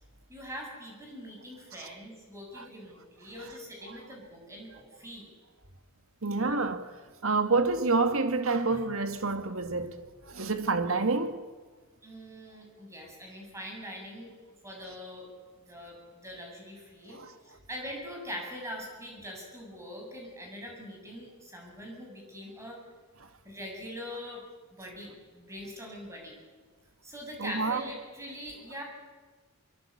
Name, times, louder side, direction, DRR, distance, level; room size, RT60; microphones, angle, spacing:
voice 1, 0.3-5.3 12.0-14.3 14.6-15.3 15.7-22.8 23.4-24.5 24.7-26.4 27.0-28.8, equal, 15° right, 7.5 m, -43 dB
voice 2, 6.2-6.9 7.2-9.9 10.3-11.4 17.1-17.3 27.4-27.8, right 3 dB, 65° right, 1.9 m, -28 dB
24.0 x 23.0 x 8.6 m
head